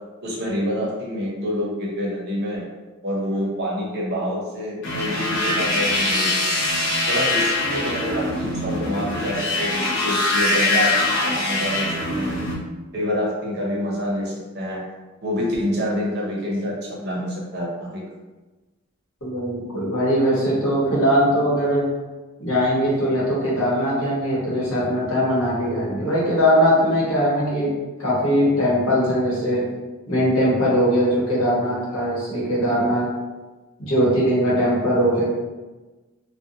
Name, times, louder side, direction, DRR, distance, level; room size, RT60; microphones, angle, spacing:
voice 1, 0.2-2.6 3.0-6.5 7.0-12.4 12.9-14.8 15.2-18.1, equal, 50° right, -3 dB, 0.7 m, -27 dB
sound 1, 4.8-12.5, left 2 dB, 55° left, 0.6 m, -23 dB
voice 2, 19.2-21.9 22.4-27.7 28.0-29.7 30.1-33.1 33.8-35.2, equal, 75° left, -6 dB, 1.0 m, -20 dB
2.5 x 2.1 x 2.7 m, 1.2 s
head